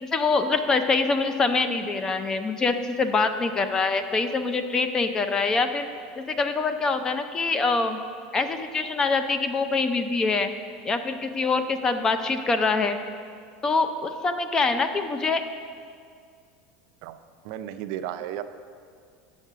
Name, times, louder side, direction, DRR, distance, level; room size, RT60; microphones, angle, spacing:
voice 1, 0.0-5.9 6.2-8.0 8.3-10.5 10.8-13.0 13.6-15.4, left 4 dB, 20° left, 9 dB, 0.4 m, -24 dB
voice 2, 17.4-18.4, right 11 dB, 65° right, 10 dB, 0.4 m, -33 dB
6.1 x 5.5 x 6.7 m, 2.2 s
supercardioid pair, 140°, 3 cm